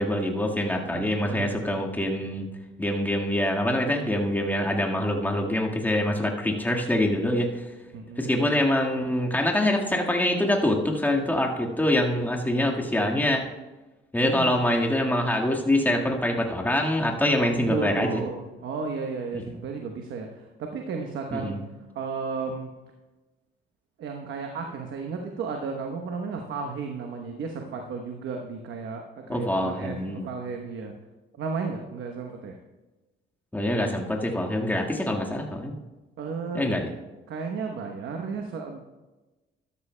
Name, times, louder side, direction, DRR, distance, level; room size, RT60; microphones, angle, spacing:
voice 1, 0.0-2.5 2.8-7.6 8.2-13.4 14.1-18.2 19.3-19.4 21.3-21.6 29.3-30.2 33.5-35.8 36.5-36.9, left 1 dB, 10° left, 0 dB, 1.6 m, -25 dB
voice 2, 0.8-1.6 7.9-8.3 14.2-14.6 17.3-21.6 21.9-22.7 24.0-30.9 31.3-32.6 36.2-36.7 37.3-38.8, right 5 dB, 75° right, 3 dB, 1.0 m, -34 dB
13.0 x 12.5 x 2.2 m, 1.1 s
cardioid pair, 90°, 20 cm